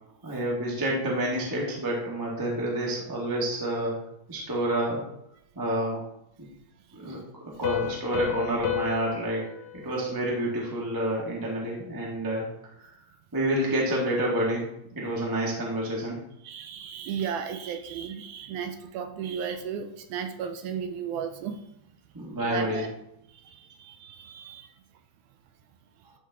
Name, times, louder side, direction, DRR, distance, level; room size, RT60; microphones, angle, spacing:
voice 1, 0.2-4.0 4.3-5.0 5.5-6.0 6.9-7.2 7.6-9.4 9.7-12.5 13.3-14.6 14.9-16.2 22.1-22.8, right 1 dB, 10° right, -4 dB, 1.0 m, -28 dB
Piano, 7.6-11.1, left 12 dB, 70° left, 2.0 m, -33 dB
voice 2, 16.4-21.6 22.4-22.9 23.4-24.7, right 7 dB, 80° right, 7 dB, 1.9 m, -35 dB
12.5 x 4.2 x 3.6 m, 0.79 s
omnidirectional pair, 3.6 m